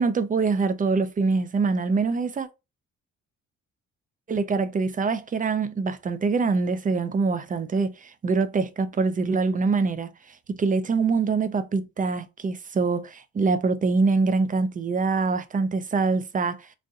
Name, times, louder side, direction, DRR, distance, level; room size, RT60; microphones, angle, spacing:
voice 1, 0.0-2.5 4.3-10.1 10.5-16.6, right 4 dB, 25° right, 0.5 m, -24 dB
4.0 x 2.5 x 2.4 m
cardioid pair, 90°, 30 cm